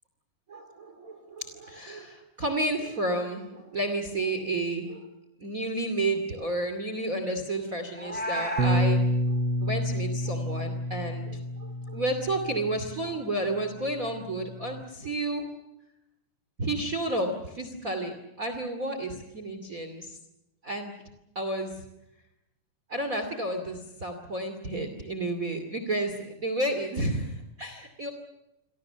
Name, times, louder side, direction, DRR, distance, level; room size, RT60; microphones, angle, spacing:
voice 1, 0.5-5.1 5.4-9.0 9.3-15.5 16.6-20.2 20.6-20.9 21.3-21.8 22.9-28.1, right 2 dB, 30° right, 7 dB, 2.7 m, -31 dB
Meow, 7.9-8.8, equal, 5° left, 7.3 m, -32 dB
Bass guitar, 8.6-13.1 13.9-14.8, equal, 60° right, 1.3 m, -29 dB
29.0 x 24.5 x 6.9 m, 0.89 s
omnidirectional pair, 3.5 m